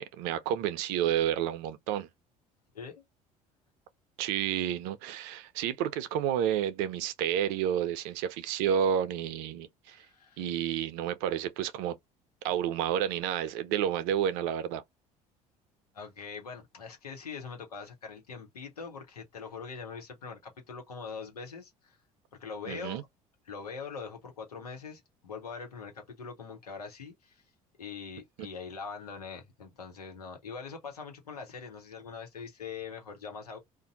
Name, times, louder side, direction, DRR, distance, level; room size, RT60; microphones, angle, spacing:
voice 1, 0.0-2.1 4.2-10.0 10.4-12.0 12.4-14.8 22.7-23.0, right 9 dB, 65° right, 0.6 m, -30 dB
voice 2, 9.9-10.4 15.9-22.0 22.4-23.0 23.5-27.4 27.8-33.6, left 5 dB, 85° left, 0.9 m, -42 dB
2.6 x 2.1 x 3.9 m
figure-of-eight pair, 60°, 19 cm